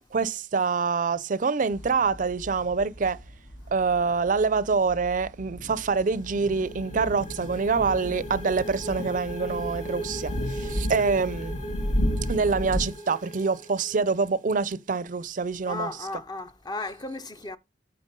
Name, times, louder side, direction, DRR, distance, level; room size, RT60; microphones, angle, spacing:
voice 1, 0.1-3.2 3.7-11.5 12.3-15.9, right 4 dB, 45° right, 0.5 m, -26 dB
sound 1, 1.7-12.9, equal, 70° left, 1.6 m, -34 dB
sound 2, 5.8-14.4, right 2 dB, 40° left, 3.3 m, -39 dB
voice 2, 15.7-17.6, left 2 dB, 20° left, 0.6 m, -35 dB
9.0 x 4.3 x 5.3 m
head